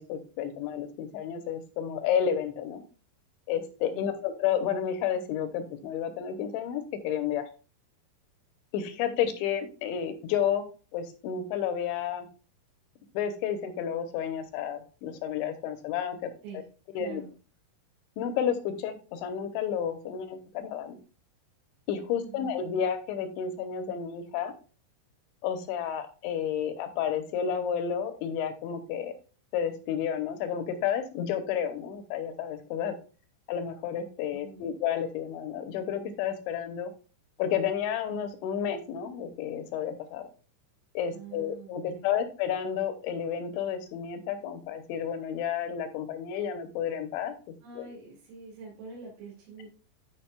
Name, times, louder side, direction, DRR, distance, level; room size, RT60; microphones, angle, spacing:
voice 1, 0.0-2.8 3.5-7.5 8.7-10.7 10.9-12.3 13.1-16.3 17.0-17.2 18.2-21.0 21.9-24.5 25.4-29.1 29.5-33.0 33.5-36.9 37.4-40.2 40.9-47.3 47.8-47.9, left 8 dB, 80° left, 8 dB, 3.1 m, -31 dB
voice 2, 16.9-17.3 22.2-22.7 34.3-34.6 41.1-42.1 47.6-49.7, right 4 dB, 85° right, -6 dB, 5.0 m, -46 dB
13.5 x 5.0 x 2.3 m, 0.36 s
omnidirectional pair, 5.6 m